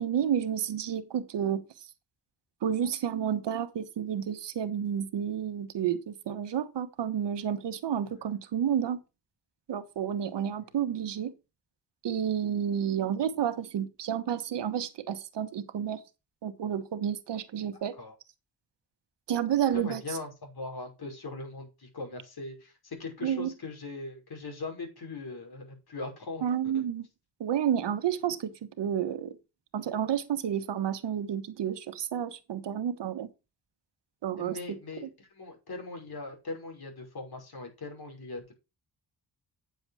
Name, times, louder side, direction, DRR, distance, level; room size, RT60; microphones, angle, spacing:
voice 1, 0.0-1.6 2.6-9.0 9.7-11.3 12.0-16.0 16.4-18.0 19.3-20.2 23.2-23.5 26.4-27.1 27.4-29.4 29.7-33.3 34.2-34.8, right 9 dB, 85° right, 1.3 m, -30 dB
voice 2, 17.7-18.1 19.7-26.5 26.7-26.8 34.4-38.5, left 3 dB, 60° left, 5.7 m, -40 dB
9.4 x 7.1 x 4.8 m
cardioid pair, 75°, 41 cm